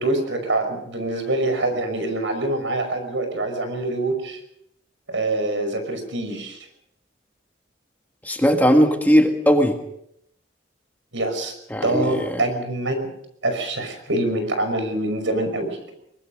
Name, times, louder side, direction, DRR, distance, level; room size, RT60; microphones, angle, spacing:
voice 1, 0.0-4.4 5.1-6.6 11.1-11.5 11.8-13.1 13.4-15.9, right 2 dB, 90° right, 7 dB, 5.8 m, -25 dB
voice 2, 8.2-9.8 11.7-12.4, equal, 10° left, 4 dB, 1.8 m, -18 dB
23.5 x 21.0 x 5.3 m, 0.76 s
head